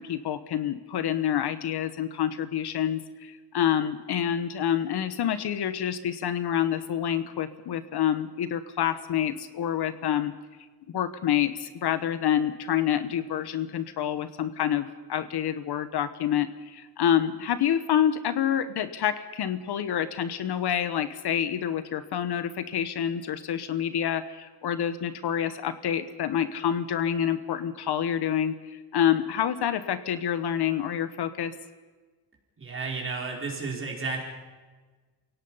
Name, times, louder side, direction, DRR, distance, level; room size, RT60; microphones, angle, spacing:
voice 1, 0.0-10.3 10.9-31.5, left 9 dB, 70° left, 12 dB, 1.3 m, -27 dB
voice 2, 32.6-34.2, right 4 dB, 30° right, -1 dB, 4.7 m, -32 dB
29.0 x 17.5 x 5.7 m, 1.3 s
wide cardioid pair, 160°, 41 cm